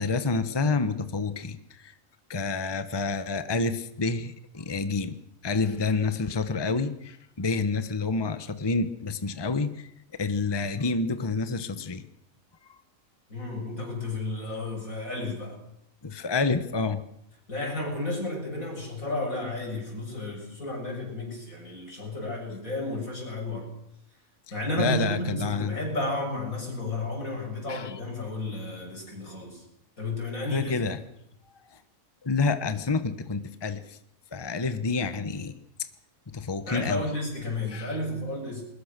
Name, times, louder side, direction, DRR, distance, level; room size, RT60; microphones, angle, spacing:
voice 1, 0.0-1.9 2.3-5.2 5.4-9.9 10.2-12.0 12.7-12.8 16.0-17.0 24.8-25.8 27.7-27.9 30.5-31.0 31.7-31.8 32.2-34.0 34.3-35.5 36.3-37.1 37.7-38.0, left 4 dB, 20° left, 11 dB, 1.0 m, -28 dB
voice 2, 13.3-15.6 17.5-23.7 24.5-29.6 30.0-30.7 36.7-38.6, left 2 dB, 90° left, 0 dB, 7.7 m, -32 dB
21.5 x 20.0 x 6.7 m, 0.77 s
omnidirectional pair, 1.4 m